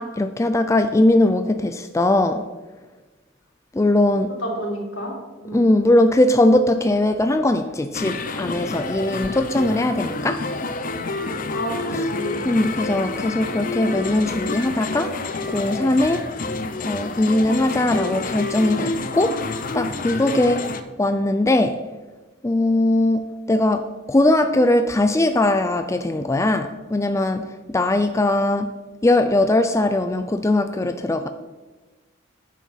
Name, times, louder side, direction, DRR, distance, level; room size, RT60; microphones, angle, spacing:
voice 1, 0.0-2.4 3.7-4.3 5.5-10.4 12.4-16.2 16.8-19.4 19.7-20.7 21.0-21.8 22.4-28.7 29.0-31.3, left 1 dB, 15° left, 8 dB, 0.4 m, -20 dB
voice 2, 4.4-5.7 11.5-12.4, right 1 dB, 70° left, -1 dB, 2.9 m, -30 dB
sound 1, 7.9-20.8, left 3 dB, 40° left, 0.7 m, -28 dB
9.4 x 7.4 x 5.7 m, 1.3 s
head